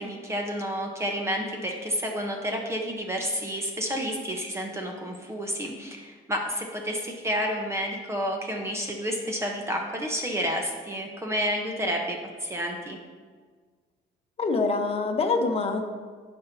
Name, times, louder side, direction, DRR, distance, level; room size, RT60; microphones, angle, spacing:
voice 1, 0.0-13.0, equal, 15° right, 1 dB, 1.0 m, -30 dB
voice 2, 14.4-15.8, left 3 dB, 35° left, 3 dB, 1.1 m, -25 dB
14.0 x 5.4 x 2.8 m, 1.6 s
cardioid pair, 110°, 17 cm